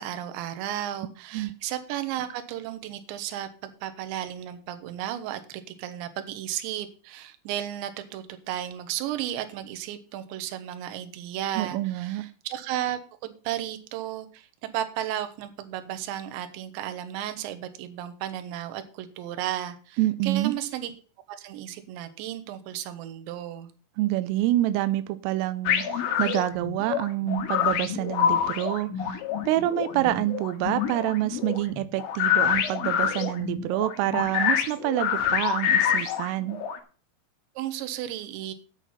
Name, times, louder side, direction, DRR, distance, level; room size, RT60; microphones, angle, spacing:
voice 1, 0.0-3.5 3.8-14.5 14.7-20.9 21.3-23.7 37.6-38.5, right 12 dB, 75° right, 9 dB, 3.3 m, -34 dB
voice 2, 11.6-12.2 20.0-20.5 24.0-28.9 29.5-36.6, right 15 dB, 90° right, 12 dB, 3.3 m, -27 dB
sound 1, 25.7-36.8, left 9 dB, 90° left, 4.1 m, -26 dB
9.2 x 9.1 x 5.7 m, 0.38 s
omnidirectional pair, 5.7 m